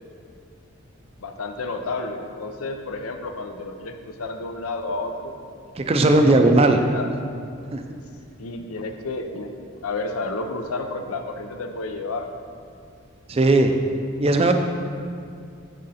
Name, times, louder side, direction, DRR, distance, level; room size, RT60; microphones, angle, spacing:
voice 1, 1.2-5.3 6.1-6.4 6.8-7.1 8.4-12.3, left 3 dB, 90° left, 6 dB, 0.6 m, -31 dB
voice 2, 5.8-6.8 7.7-7.8 13.3-13.8 14.2-14.5, right 2 dB, 30° right, 6 dB, 0.4 m, -17 dB
6.4 x 6.3 x 4.2 m, 2.3 s
head